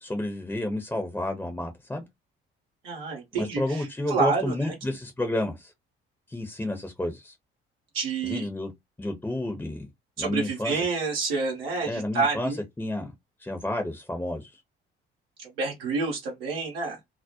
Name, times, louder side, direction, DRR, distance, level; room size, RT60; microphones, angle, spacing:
voice 1, 0.0-2.0 3.3-5.7 6.3-7.3 8.2-8.7 9.0-9.9 10.2-10.8 11.8-13.1 13.4-14.5, left 1 dB, 5° left, 0.6 m, -30 dB
voice 2, 2.8-4.7 7.9-8.4 10.2-12.6 15.6-17.0, right 4 dB, 75° right, 0.7 m, -28 dB
2.3 x 2.1 x 2.7 m
figure-of-eight pair, 45°, 30 cm